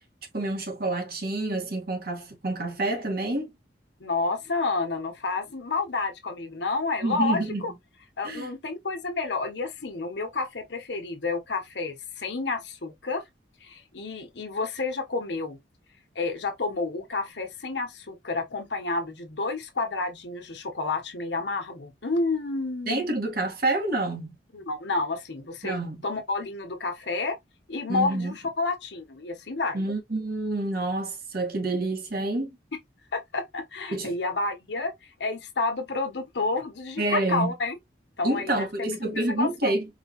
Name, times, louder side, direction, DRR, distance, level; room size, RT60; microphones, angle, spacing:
voice 1, 0.3-3.5 7.0-7.6 8.2-8.5 22.9-24.4 25.6-26.0 27.9-28.3 29.7-32.5 33.9-34.1 37.0-37.5 38.2-39.9, right 2 dB, 60° right, 1.6 m, -28 dB
voice 2, 4.0-7.7 8.2-13.2 13.6-15.6 16.1-23.1 24.5-25.8 26.0-27.4 27.7-29.8 33.1-34.9 35.2-37.8 38.2-39.7, left 3 dB, 75° left, 1.1 m, -30 dB
4.8 x 2.7 x 2.9 m
head